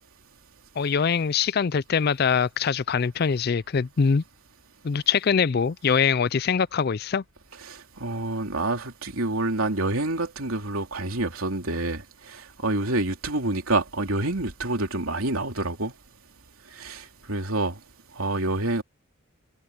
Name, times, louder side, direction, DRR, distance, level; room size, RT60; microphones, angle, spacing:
voice 1, 0.8-4.2 4.8-7.2, left 6 dB, 45° left, 0.4 m, -23 dB
voice 2, 7.7-15.9 16.7-17.8 18.1-18.8, right 2 dB, 80° right, 3.2 m, -27 dB
head